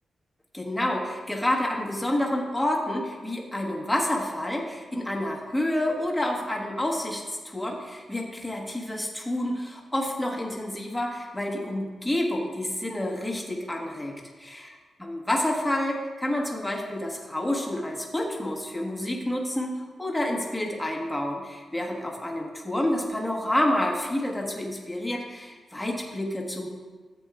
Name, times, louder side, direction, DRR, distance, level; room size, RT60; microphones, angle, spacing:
voice 1, 0.5-14.2 14.4-14.7 15.0-26.7, left 1 dB, 5° left, -1 dB, 1.3 m, -29 dB
14.0 x 8.1 x 2.4 m, 1.4 s
wide cardioid pair, 125°, 0 cm